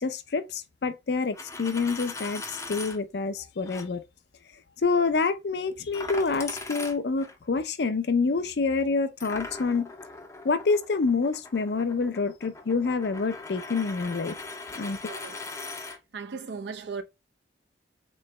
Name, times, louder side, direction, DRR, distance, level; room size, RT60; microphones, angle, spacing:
voice 1, 0.0-4.0 4.8-9.9 10.4-14.4 14.7-15.0, left 4 dB, 65° left, 0.5 m, -27 dB
Coin (dropping), 1.2-3.0 3.7-3.9 5.9-7.4 9.2-16.0, left 3 dB, 15° left, 0.5 m, -40 dB
voice 2, 15.1-15.4 15.9-17.0, right 5 dB, 70° right, 0.5 m, -37 dB
3.8 x 3.1 x 3.2 m
head